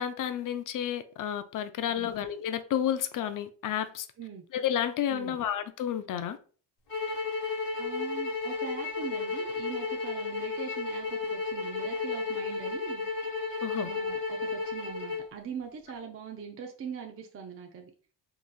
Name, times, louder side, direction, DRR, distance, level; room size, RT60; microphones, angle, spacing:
voice 1, 0.0-4.1 4.5-6.4 13.6-13.9, left 10 dB, 45° left, 0.4 m, -31 dB
sound 1, 6.9-15.3, left 4 dB, 75° left, 1.4 m, -33 dB
voice 2, 7.8-13.1 13.7-17.9, right 6 dB, 30° right, 0.5 m, -42 dB
3.7 x 2.4 x 2.3 m
supercardioid pair, 75°, 49 cm